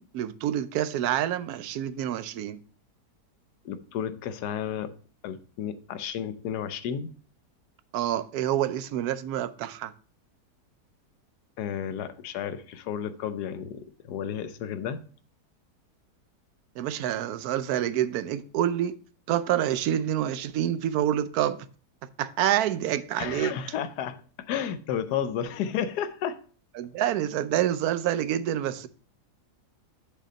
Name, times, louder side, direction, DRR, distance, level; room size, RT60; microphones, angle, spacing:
voice 1, 0.0-2.6 7.9-9.9 16.8-19.0 19.3-21.7 22.0-23.5 26.8-28.9, right 11 dB, 75° right, 1.0 m, -27 dB
voice 2, 3.6-4.9 5.2-7.1 11.6-15.0 23.2-26.4, left 8 dB, 80° left, 1.2 m, -32 dB
7.2 x 5.6 x 4.2 m
omnidirectional pair, 1.8 m